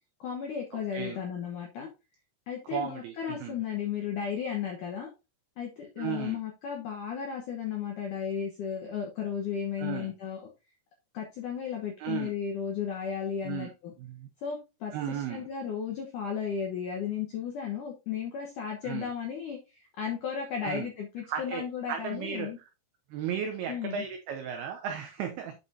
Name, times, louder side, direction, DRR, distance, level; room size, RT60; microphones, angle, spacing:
voice 1, 0.2-1.9 2.5-5.1 5.6-10.4 11.1-13.9 14.4-22.6 23.7-24.0, left 7 dB, 80° left, 1.8 m, -34 dB
voice 2, 2.7-3.6 6.0-6.4 9.8-10.1 12.0-12.3 13.4-13.7 14.0-14.3 14.9-15.5 18.8-19.1 20.6-20.9 21.3-22.5 23.1-25.5, right 8 dB, 90° right, 2.2 m, -35 dB
8.7 x 6.8 x 2.7 m
omnidirectional pair, 5.5 m